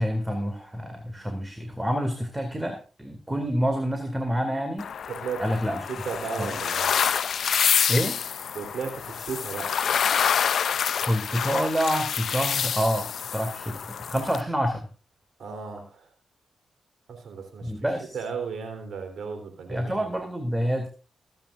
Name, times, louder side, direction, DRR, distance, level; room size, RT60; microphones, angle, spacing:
voice 1, 0.0-4.9 5.4-5.9 6.4-6.5 7.9-8.2 11.0-14.9 17.6-18.1 19.7-20.9, equal, 15° right, 6 dB, 2.2 m, -27 dB
sound 1, 4.8-14.4, left 7 dB, 70° left, 0.5 m, -27 dB
voice 2, 5.1-5.4 5.9-6.9 8.5-9.8 15.4-16.1 17.1-17.7 18.1-20.1, right 5 dB, 70° right, 5 dB, 3.4 m, -35 dB
23.0 x 8.9 x 2.5 m, 0.34 s
supercardioid pair, 55°, 0 cm